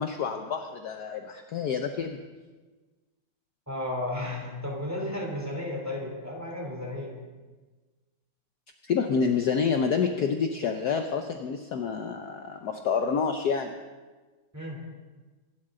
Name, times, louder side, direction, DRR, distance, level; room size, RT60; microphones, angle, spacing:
voice 1, 0.0-2.2 8.8-13.7, left 6 dB, 60° left, 5 dB, 1.2 m, -28 dB
voice 2, 3.7-7.2 14.5-14.8, left 1 dB, 5° right, -1 dB, 3.1 m, -33 dB
25.0 x 12.5 x 3.8 m, 1.3 s
omnidirectional pair, 2.2 m